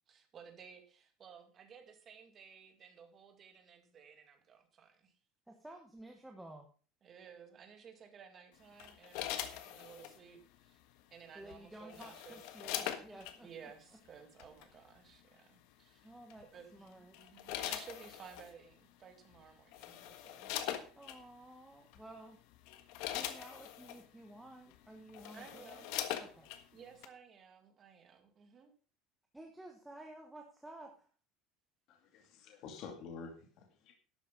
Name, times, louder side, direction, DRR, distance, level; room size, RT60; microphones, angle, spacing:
voice 1, 0.0-5.1 7.0-10.8 11.1-12.4 12.7-16.1 16.4-20.6 25.3-25.9 26.7-28.7, right 7 dB, 30° right, 6 dB, 2.2 m, -56 dB
voice 2, 5.5-6.7 11.3-13.7 16.0-16.5 16.7-17.2 20.9-22.4 23.0-25.9 26.1-26.5 29.3-31.1, right 1 dB, 5° right, 2 dB, 1.2 m, -53 dB
sound 1, 8.8-10.2 11.5-13.4 14.4-14.6 16.3-16.6 17.1-18.5 19.3-19.4 19.7-21.2 21.9-22.1 22.5-24.0 24.7-24.8 25.1-26.6 27.0-27.1, left 12 dB, 65° left, 1.5 m, -41 dB
voice 3, 31.9-33.9, left 5 dB, 50° left, 3 dB, 2.4 m, -49 dB
12.0 x 8.2 x 5.3 m, 0.39 s
cardioid pair, 170°, 0 cm